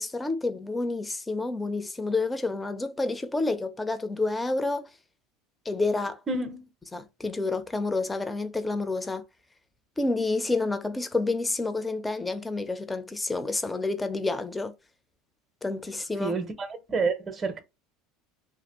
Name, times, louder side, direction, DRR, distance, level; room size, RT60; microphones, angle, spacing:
voice 1, 0.0-4.9 5.7-6.2 6.9-9.2 10.0-14.7 15.6-16.4, left 3 dB, 15° left, 0.6 m, -29 dB
voice 2, 6.3-6.6 16.2-17.6, right 4 dB, 25° right, 0.7 m, -29 dB
2.8 x 2.5 x 2.9 m
supercardioid pair, 105°, 0 cm